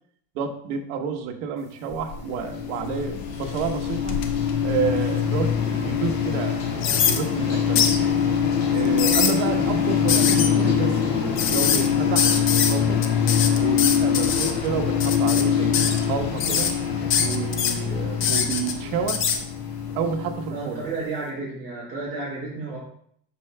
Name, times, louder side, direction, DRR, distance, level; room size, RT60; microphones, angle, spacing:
voice 1, 0.3-4.2 4.6-8.1 8.7-12.4 12.6-13.1 13.6-16.7 17.2-19.3 19.9-20.8, right 6 dB, 80° right, 4 dB, 1.2 m, -30 dB
sound 1, 1.9-20.9, left 7 dB, 80° left, 1.9 m, -24 dB
sound 2, 1.9-2.4 2.8-5.5 6.0-6.1 6.8-7.2 7.7-8.0 8.8-9.3 10.1-10.5 11.4-11.9 12.1-12.7 13.0-14.5 15.0-15.4 15.7-16.0 16.4-16.7 17.1-17.7 18.2-18.7 19.1-19.4, left 7 dB, 30° left, 0.5 m, -23 dB
voice 2, 20.5-22.8, right 3 dB, 25° right, -7 dB, 2.4 m, -32 dB
11.5 x 4.5 x 2.2 m, 0.65 s
cardioid pair, 165°, 43 cm